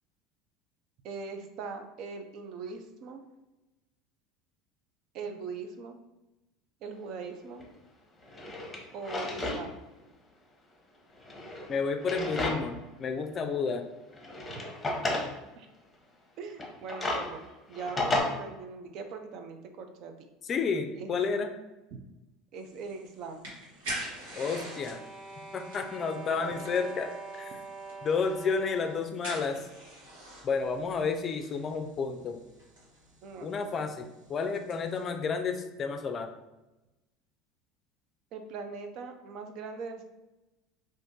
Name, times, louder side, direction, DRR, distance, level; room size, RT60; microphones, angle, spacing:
voice 1, 1.0-3.2 5.1-6.0 6.8-7.7 8.9-9.8 15.6-15.7 16.4-17.4 17.7-20.1 21.0-21.2 21.9-22.0 22.5-23.4 33.2-33.6 38.3-40.0, right 4 dB, 60° right, 6 dB, 0.4 m, -40 dB
Drawer open or close, 7.6-7.7 8.2-9.6 10.0-10.1 11.1-12.8 13.3-13.4 14.1-15.3 16.5-18.2, left 2 dB, 20° left, 0.8 m, -33 dB
voice 2, 11.7-13.9 20.5-21.5 24.4-25.0 25.5-27.1 27.4-27.5 28.0-29.6 30.4-32.4 33.4-34.0 34.3-36.3, left 5 dB, 40° left, 7 dB, 0.4 m, -31 dB
sound 1, 22.6-35.1, right 1 dB, 80° right, 1.4 m, -46 dB
sound 2, 24.4-29.2, right 3 dB, 30° right, 1.2 m, -44 dB
2.5 x 2.5 x 3.6 m, 1.0 s
hypercardioid pair, 90°, 0 cm